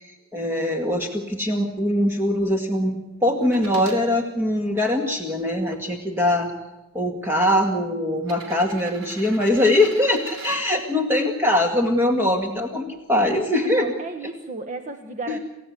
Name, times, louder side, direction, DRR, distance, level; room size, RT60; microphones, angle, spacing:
voice 1, 0.0-6.5 6.9-13.9 15.3-15.4, left 1 dB, 10° right, 2 dB, 2.1 m, -22 dB
sound 1, 3.4-4.0 4.7-5.8 6.8-6.9 8.2-10.6 12.5-12.6, right 3 dB, 75° right, 3.5 m, -41 dB
voice 2, 13.6-15.4, right 3 dB, 35° right, 6 dB, 1.2 m, -34 dB
28.5 x 15.5 x 8.5 m, 1.1 s
head